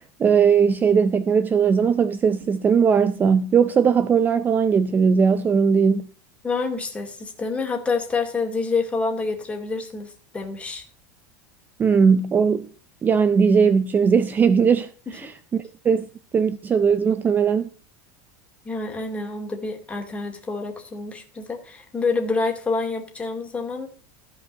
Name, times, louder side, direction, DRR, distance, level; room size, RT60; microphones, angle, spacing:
voice 1, 0.2-6.1 11.8-12.7 13.0-16.1 16.3-17.7, right 6 dB, 20° right, 0.5 m, -19 dB
voice 2, 6.4-10.8 18.6-23.9, left 4 dB, 15° left, 2.3 m, -27 dB
15.0 x 5.2 x 6.4 m
supercardioid pair, 140°, 9 cm